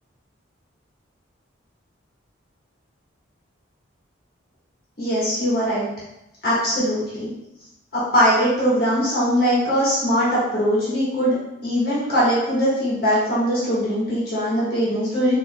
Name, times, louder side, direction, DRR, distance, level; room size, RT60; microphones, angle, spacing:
voice 1, 5.0-5.9 6.4-7.3 7.9-11.4 11.6-15.3, equal, 50° left, -9 dB, 1.4 m, -21 dB
4.4 x 3.0 x 2.2 m, 0.90 s
head